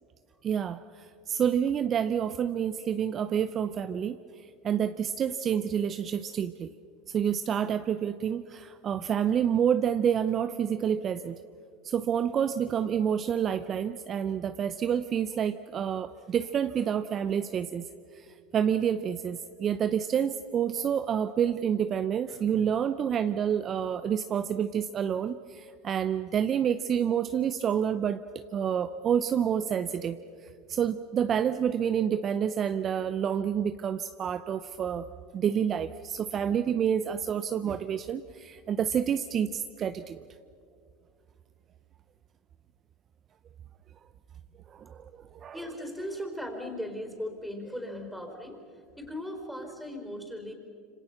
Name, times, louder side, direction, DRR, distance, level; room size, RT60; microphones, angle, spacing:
voice 1, 0.4-6.7 7.1-11.4 11.8-17.9 18.1-30.2 30.7-35.1 35.3-40.2 44.7-45.6, right 8 dB, 40° right, 11 dB, 0.7 m, -28 dB
voice 2, 45.5-50.5, equal, ahead, 5 dB, 4.5 m, -38 dB
27.0 x 25.5 x 6.0 m, 2.5 s
hypercardioid pair, 95°, 0 cm